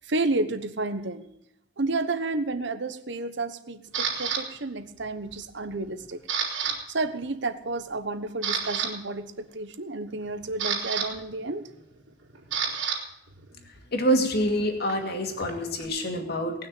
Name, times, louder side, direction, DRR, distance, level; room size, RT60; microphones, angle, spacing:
voice 1, 0.1-1.3 1.8-6.2 6.9-11.6, right 2 dB, 65° right, 11 dB, 1.1 m, -31 dB
Camera, 3.9-4.4 5.0-5.3 5.7-6.8 7.0-7.2 7.8-7.9 8.3-8.9 10.1-13.0 13.3-15.9, right 7 dB, 90° right, 3.4 m, -31 dB
voice 2, 13.9-16.7, equal, 60° left, 4 dB, 2.4 m, -26 dB
19.0 x 6.4 x 9.0 m, 0.82 s
head